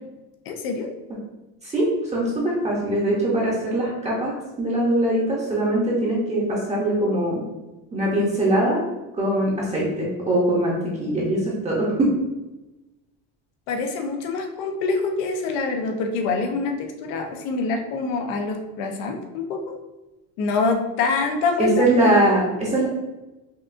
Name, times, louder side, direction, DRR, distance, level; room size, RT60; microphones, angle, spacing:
voice 1, 0.5-0.9 13.7-19.7 20.4-21.8, left 4 dB, 85° left, 4 dB, 0.8 m, -25 dB
voice 2, 1.6-7.4 7.9-8.8 9.1-12.1 21.6-22.9, right 1 dB, 15° right, -5 dB, 0.7 m, -22 dB
5.7 x 2.5 x 2.5 m, 1.0 s
cardioid pair, 150°, 38 cm